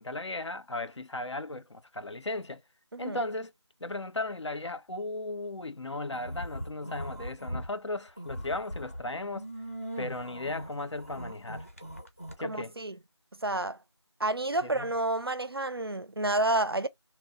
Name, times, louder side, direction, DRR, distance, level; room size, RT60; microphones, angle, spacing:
voice 1, 0.0-2.6 3.0-3.5 3.8-9.5 10.0-11.7 12.4-12.7 14.6-14.9, left 2 dB, 75° left, 0.5 m, -36 dB
sound 1, 6.1-7.7 8.1-12.3, equal, 30° left, 0.6 m, -40 dB
voice 2, 12.4-13.0 13.4-13.8 14.2-16.9, right 2 dB, 55° right, 0.4 m, -29 dB
2.9 x 2.0 x 3.9 m
figure-of-eight pair, 175°, 15 cm